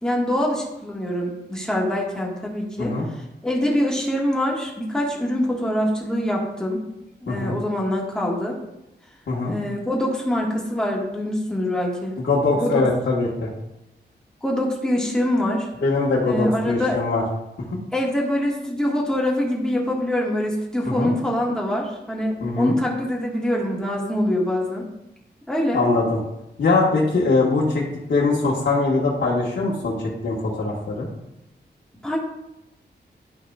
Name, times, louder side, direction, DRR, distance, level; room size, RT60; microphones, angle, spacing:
voice 1, 0.0-2.9 3.4-6.8 7.2-8.6 9.4-12.1 12.5-12.8 14.4-15.7 16.2-17.0 17.9-24.9 25.5-25.8 32.0-32.2, left 1 dB, 5° left, -3 dB, 1.7 m, -24 dB
voice 2, 7.3-7.6 9.3-9.5 12.2-13.5 15.8-17.2 17.7-17.8 20.8-21.1 22.4-22.7 25.7-26.2 26.6-27.8 28.1-31.1, left 3 dB, 85° left, -7 dB, 1.6 m, -22 dB
12.0 x 5.3 x 2.4 m, 0.88 s
wide cardioid pair, 145°, 18 cm